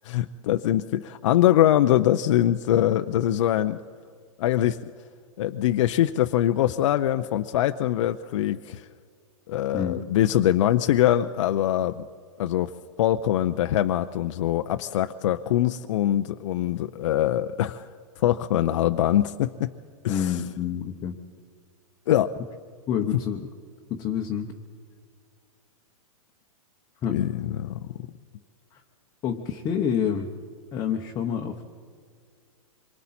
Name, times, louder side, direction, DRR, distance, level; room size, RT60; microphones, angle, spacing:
voice 1, 0.0-3.8 4.4-4.8 5.4-8.8 9.5-12.0 12.4-12.7 13.0-17.9 18.2-19.7 20.0-20.4 22.1-22.3 27.1-27.8, left 12 dB, 60° left, 9 dB, 0.6 m, -23 dB
voice 2, 20.1-21.1 22.9-23.5 23.9-24.5 27.0-27.2 28.7-28.8 29.2-30.3 30.7-31.6, left 8 dB, 20° left, 2 dB, 0.9 m, -28 dB
26.0 x 23.0 x 4.3 m, 2.1 s
hypercardioid pair, 155°, 18 cm